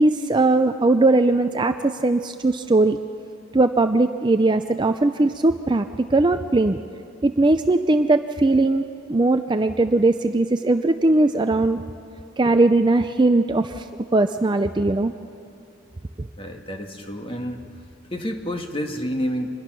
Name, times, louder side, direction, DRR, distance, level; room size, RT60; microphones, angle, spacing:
voice 1, 0.0-3.0 3.5-6.8 7.2-8.8 9.1-11.8 12.4-13.9 14.1-15.1 16.2-16.3, right 2 dB, 20° right, 8 dB, 0.4 m, -19 dB
voice 2, 16.4-17.6 18.0-19.5, equal, 25° left, 4 dB, 1.6 m, -29 dB
26.0 x 21.0 x 6.1 m, 2.4 s
head